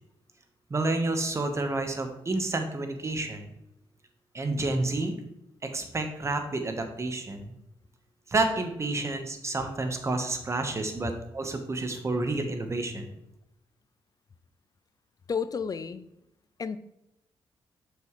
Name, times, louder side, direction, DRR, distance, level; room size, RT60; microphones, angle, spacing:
voice 1, 0.7-3.4 4.3-5.1 5.7-7.5 8.3-13.1, right 2 dB, 30° right, 5 dB, 1.2 m, -29 dB
voice 2, 15.3-16.0 16.6-16.8, left 6 dB, 40° left, 14 dB, 0.5 m, -31 dB
7.0 x 6.5 x 3.2 m, 0.85 s
cardioid pair, 90°, 9 cm